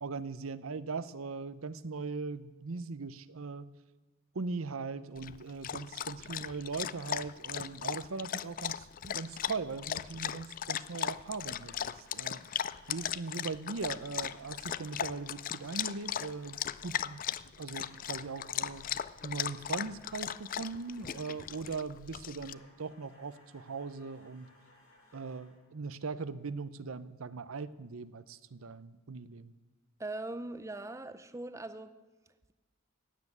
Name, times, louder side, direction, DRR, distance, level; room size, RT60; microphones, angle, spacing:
voice 1, 0.0-3.7 4.3-12.4 12.9-17.2 17.6-18.8 19.2-24.5 25.1-29.5, right 4 dB, 80° right, 15 dB, 0.7 m, -40 dB
Dog, 5.2-22.5, left 9 dB, 40° left, 0.4 m, -38 dB
sound 1, 11.6-13.2 14.3-16.8 17.7-21.7 22.4-25.7, left 1 dB, 80° left, 6.7 m, -62 dB
voice 2, 30.0-31.9, right 2 dB, 15° right, 11 dB, 0.6 m, -40 dB
15.5 x 9.5 x 9.4 m, 1.2 s
head